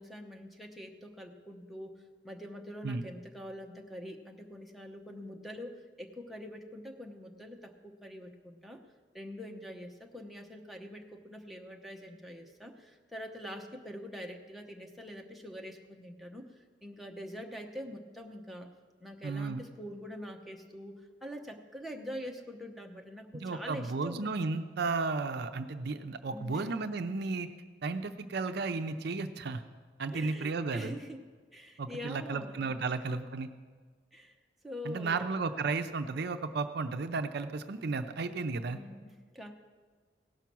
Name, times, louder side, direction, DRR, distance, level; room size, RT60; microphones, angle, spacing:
voice 1, 0.0-1.9 2.2-8.8 9.1-18.7 19.0-24.3 26.3-26.7 30.1-31.2 31.5-32.7 33.1-33.2 34.1-34.4 34.6-35.3 38.7-39.5, equal, ahead, 1 dB, 0.8 m, -44 dB
voice 2, 19.2-19.6 23.3-27.5 27.8-29.6 30.0-30.9 31.8-33.5 34.8-38.8, right 4 dB, 60° right, 9 dB, 0.5 m, -34 dB
17.0 x 5.7 x 6.1 m, 1.5 s
head